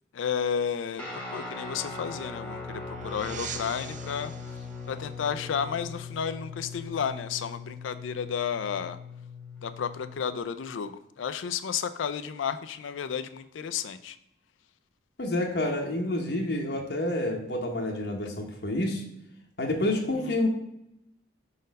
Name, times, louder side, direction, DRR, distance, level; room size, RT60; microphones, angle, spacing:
voice 1, 0.1-1.0 1.3-4.6 4.9-9.0 9.6-14.2 20.3-20.4, left 7 dB, 80° left, 11 dB, 0.4 m, -32 dB
Guitar, 1.0-10.4, left 4 dB, 5° left, 1.1 m, -40 dB
sound 1, 1.4-6.8, right 5 dB, 40° right, 0.6 m, -44 dB
voice 2, 15.2-19.0 19.6-20.5, left 1 dB, 60° left, 1 dB, 0.9 m, -28 dB
5.3 x 4.1 x 5.2 m, 0.81 s
head